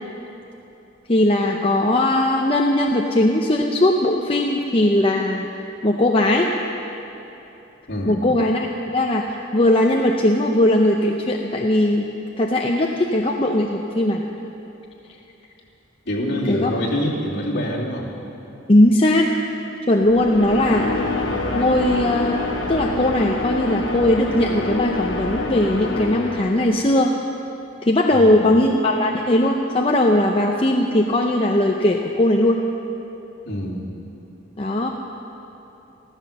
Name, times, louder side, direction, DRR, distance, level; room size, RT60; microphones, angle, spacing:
voice 1, 1.1-5.5 5.8-6.5 8.1-8.7 8.9-12.1 12.4-14.2 16.5-16.7 18.7-19.3 19.9-20.9 21.5-22.4 22.7-27.1 27.8-32.6 34.6-34.9, left 1 dB, 30° left, 1 dB, 0.7 m, -19 dB
voice 2, 7.9-8.2 16.1-18.1 28.1-28.5 33.4-33.9, equal, 60° left, -5 dB, 2.9 m, -25 dB
sound 1, 20.0-26.9, left 2 dB, 80° left, 1.7 m, -26 dB
14.5 x 14.0 x 6.8 m, 3.0 s
head